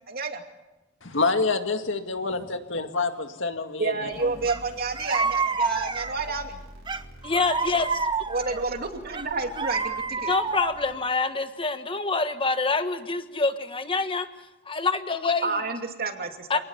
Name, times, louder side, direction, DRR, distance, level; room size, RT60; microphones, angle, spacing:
voice 1, 0.1-0.4 3.8-6.6 8.3-10.3 15.4-16.6, right 3 dB, 50° right, 4 dB, 2.6 m, -30 dB
voice 2, 1.0-4.3, left 3 dB, 65° left, 6 dB, 2.1 m, -27 dB
sound 1, 4.1-11.0, equal, 80° right, 5.2 m, -48 dB
sound 2, 4.5-4.6 4.9-6.3 6.9-8.6 9.1-10.9, right 4 dB, 25° right, 0.9 m, -28 dB
voice 3, 7.2-7.9 10.2-14.3 14.7-15.6 16.5-16.6, left 3 dB, 25° left, 9 dB, 1.4 m, -26 dB
27.5 x 19.0 x 7.2 m, 1.0 s
head